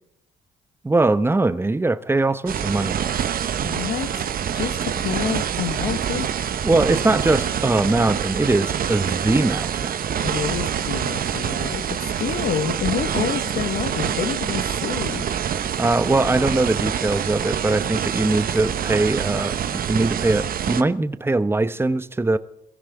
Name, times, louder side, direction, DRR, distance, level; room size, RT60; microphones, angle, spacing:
voice 1, 0.8-3.0 6.6-9.9 15.8-22.4, right 2 dB, 15° right, 0.9 m, -21 dB
sound 1, 2.5-20.8, right 9 dB, 55° right, 1.0 m, -26 dB
voice 2, 3.6-6.3 10.2-15.3, left 8 dB, 65° left, 1.2 m, -28 dB
22.5 x 15.0 x 3.5 m
hypercardioid pair, 55°, 18 cm